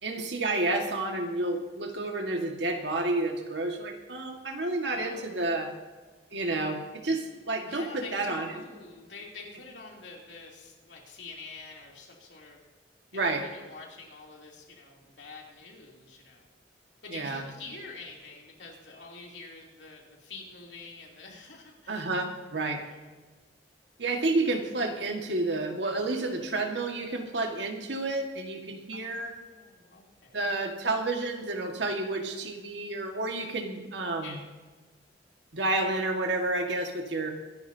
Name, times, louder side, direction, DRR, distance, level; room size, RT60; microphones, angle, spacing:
voice 1, 0.0-5.7 6.3-8.5 13.1-13.4 17.1-17.4 21.9-22.8 24.0-29.3 30.3-34.3 35.5-37.3, right 2 dB, 80° right, 3 dB, 1.8 m, -30 dB
voice 2, 4.9-5.8 7.6-12.6 13.1-16.4 17.0-22.2 22.8-23.1 28.9-30.5 34.2-34.4, left 3 dB, 80° left, -1 dB, 3.1 m, -47 dB
24.0 x 11.0 x 2.8 m, 1.3 s
head